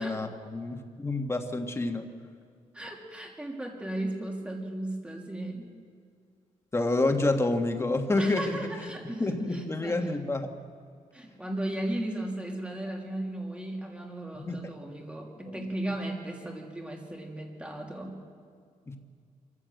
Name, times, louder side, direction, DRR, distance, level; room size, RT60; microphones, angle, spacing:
voice 1, 0.0-2.1 6.7-8.6 9.2-10.5 14.3-14.7 15.5-15.6 18.9-19.0, left 2 dB, 20° left, 4 dB, 1.6 m, -28 dB
voice 2, 2.7-5.7 8.2-10.1 11.1-18.2, right 1 dB, 10° right, 0 dB, 2.9 m, -36 dB
24.5 x 14.5 x 7.8 m, 2.2 s
cardioid pair, 120°, 14 cm